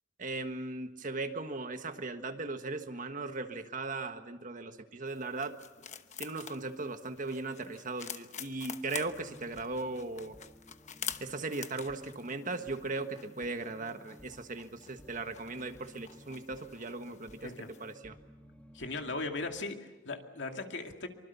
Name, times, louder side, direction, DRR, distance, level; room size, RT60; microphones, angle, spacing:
voice 1, 0.2-5.6 6.2-10.4 11.2-17.5 17.8-18.2, right 3 dB, 45° right, 8 dB, 1.5 m, -38 dB
sound 1, 5.1-17.9, left 8 dB, 40° left, 1.1 m, -48 dB
sound 2, 9.0-19.5, equal, 5° left, 1.5 m, -57 dB
voice 2, 18.7-21.1, left 3 dB, 75° left, 4 dB, 2.4 m, -38 dB
25.0 x 24.5 x 7.0 m, 1.1 s
head